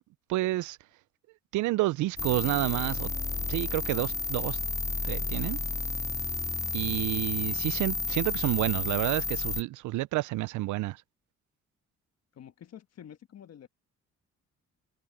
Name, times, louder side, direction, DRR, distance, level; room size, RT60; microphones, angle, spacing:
voice 1, 0.3-0.8 1.5-3.1 3.5-4.6 5.0-5.6 6.7-11.0, right 18 dB, 80° right, 0.4 m, -29 dB
sound 1, 2.2-9.6, left 3 dB, 10° left, 0.3 m, -31 dB
voice 2, 12.3-13.7, left 9 dB, 60° left, 1.4 m, -48 dB
cardioid pair, 90°, 30 cm